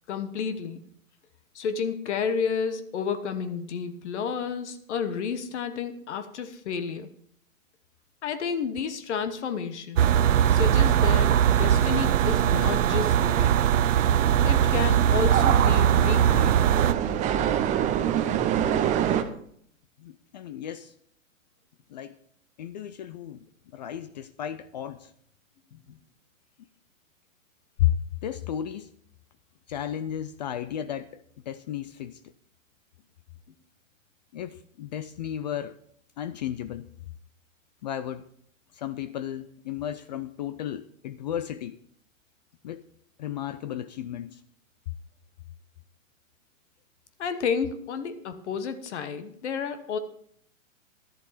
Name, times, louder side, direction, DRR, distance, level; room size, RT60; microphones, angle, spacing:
voice 1, 0.1-0.8 1.5-7.1 8.2-10.1 10.5-13.6 14.4-16.8 25.7-25.8 47.2-50.0, left 6 dB, 55° left, 1.2 m, -31 dB
sound 1, 10.0-16.9, right 10 dB, 65° right, 0.7 m, -21 dB
sound 2, 13.2-19.2, right 10 dB, 20° right, 0.7 m, -28 dB
voice 2, 20.0-20.9 21.9-22.2 22.6-23.5 23.7-25.1 27.8-27.9 28.2-28.9 29.7-32.2 34.3-35.8 36.2-36.9 37.8-38.3 38.7-41.8 42.6-42.8 43.2-44.4, left 11 dB, 35° left, 0.4 m, -33 dB
11.5 x 11.0 x 4.2 m
hypercardioid pair, 120°, 40 cm